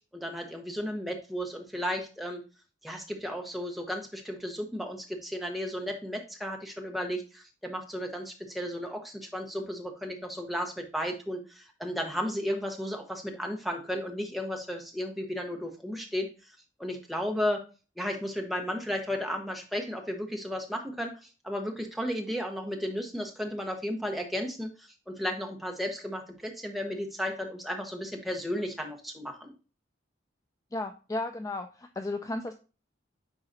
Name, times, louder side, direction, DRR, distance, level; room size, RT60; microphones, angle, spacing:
voice 1, 0.1-2.4 2.8-16.3 16.8-17.6 18.0-29.5, equal, ahead, 2 dB, 1.0 m, -34 dB
voice 2, 30.7-32.5, left 2 dB, 20° left, 6 dB, 0.3 m, -34 dB
9.9 x 3.9 x 2.6 m, 0.33 s
head